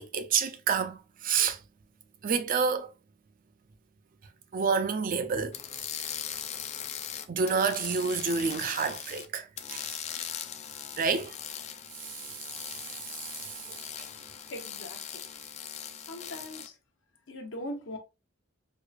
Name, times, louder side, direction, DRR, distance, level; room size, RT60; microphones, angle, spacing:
voice 1, 0.0-1.6 2.2-2.9 4.5-5.6 7.3-9.9 11.0-11.3 12.1-12.3 13.0-13.8, right 5 dB, 45° right, 0.4 m, -29 dB
sound 1, 5.5-9.3 9.6-16.7, left 9 dB, 35° left, 0.4 m, -40 dB
voice 2, 14.5-15.2 16.1-16.8 17.3-18.0, left 1 dB, 65° left, 0.8 m, -40 dB
4.5 x 2.3 x 2.4 m
head